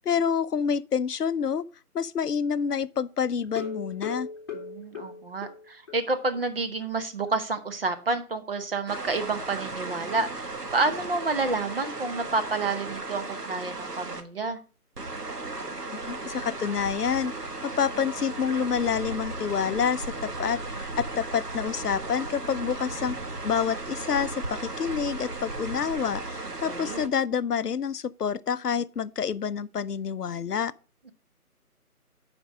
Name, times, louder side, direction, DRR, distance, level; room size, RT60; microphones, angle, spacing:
voice 1, 0.0-1.6 1.9-4.3 16.1-23.2 23.4-30.7, left 7 dB, 90° left, 0.6 m, -28 dB
sound 1, 3.4-6.0 6.3-6.4 6.8-6.9 7.3-7.4, left 5 dB, 15° left, 1.2 m, -37 dB
voice 2, 4.5-14.6 26.4-27.0, right 3 dB, 40° right, 1.1 m, -29 dB
sound 2, 8.9-14.2 15.0-27.1, right 2 dB, 85° right, 1.4 m, -35 dB
7.3 x 5.3 x 6.1 m
figure-of-eight pair, 155°, 46 cm